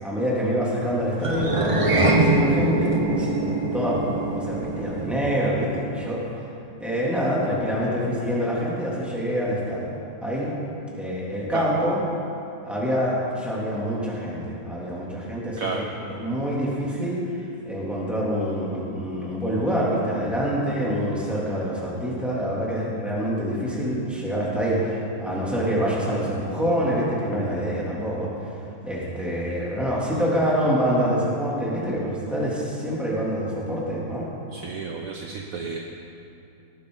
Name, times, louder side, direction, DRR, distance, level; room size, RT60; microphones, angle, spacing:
voice 1, 0.0-3.4 3.7-4.0 4.3-6.5 6.8-9.9 10.2-10.5 10.9-12.0 12.6-28.5 28.8-34.3, equal, ahead, -7 dB, 2.8 m, -26 dB
sound 1, 1.2-5.8, right 2 dB, 25° right, 0.8 m, -23 dB
voice 2, 34.5-35.8, right 5 dB, 60° right, 1 dB, 1.1 m, -31 dB
18.5 x 9.8 x 4.0 m, 2.7 s
omnidirectional pair, 1.9 m